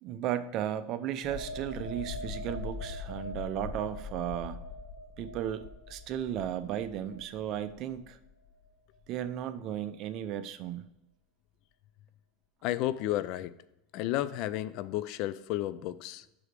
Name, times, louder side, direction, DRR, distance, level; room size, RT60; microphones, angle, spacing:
voice 1, 0.0-4.6 5.2-8.2 9.1-10.9, right 10 dB, 45° right, 11 dB, 0.6 m, -35 dB
sound 1, 1.2-8.7 9.0-9.2, left 3 dB, 40° left, 1.3 m, -42 dB
voice 2, 12.6-13.5 13.9-16.2, left 14 dB, 55° left, 16 dB, 0.4 m, -32 dB
6.0 x 4.9 x 6.7 m, 0.87 s
supercardioid pair, 135°, 0 cm